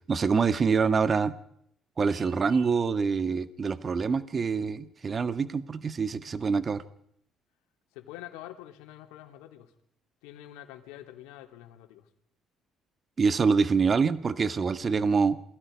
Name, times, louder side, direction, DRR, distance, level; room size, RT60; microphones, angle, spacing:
voice 1, 0.1-1.3 2.0-6.8 13.2-15.4, right 5 dB, 40° right, 11 dB, 1.7 m, -25 dB
voice 2, 2.1-2.6 7.9-9.7 10.2-12.1, left 13 dB, 80° left, 5 dB, 3.2 m, -46 dB
Vehicle horn car horn honking, 2.1-2.9, right 10 dB, 70° right, 5.0 m, -53 dB
28.5 x 22.5 x 5.4 m, 0.73 s
hypercardioid pair, 60°, 0 cm